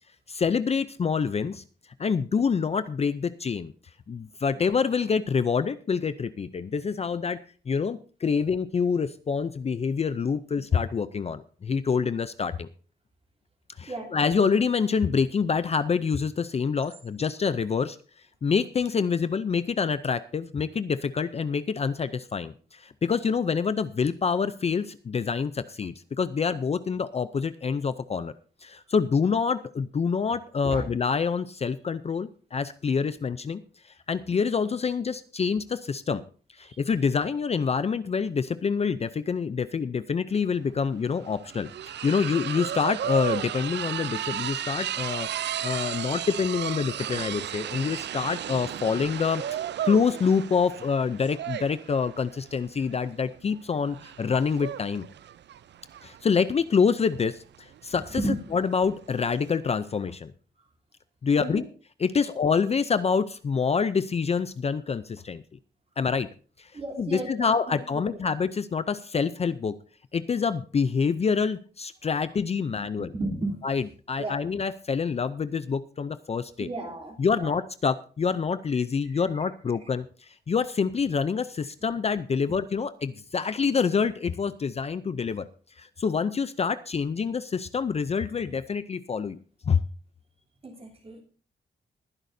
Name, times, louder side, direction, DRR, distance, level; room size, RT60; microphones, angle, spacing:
voice 1, 0.3-1.6 2.0-3.7 4.1-7.4 7.7-12.7 13.8-18.0 18.4-28.3 28.6-33.6 34.1-36.2 36.6-41.7 42.0-45.3 45.6-55.1 56.0-58.2 58.5-60.3 61.2-61.6 62.0-65.4 66.0-66.3 66.6-66.7 67.0-69.7 70.1-73.1 73.6-76.7 77.2-85.5 85.8-89.4 89.7-89.8, left 5 dB, 35° left, 13 dB, 0.5 m, -26 dB
voice 2, 13.9-14.2 30.6-30.9 36.6-36.8 58.1-58.4 61.3-61.6 62.3-62.4 66.7-68.2 73.0-73.6 74.2-74.4 76.6-77.5 78.7-78.8 79.1-79.4 90.6-91.2, right 2 dB, 35° right, 0 dB, 3.2 m, -34 dB
sound 1, 40.4-40.5 40.7-59.6, right 10 dB, 80° right, 0.5 m, -35 dB
20.5 x 10.5 x 2.7 m, 0.38 s
wide cardioid pair, 170°, 18 cm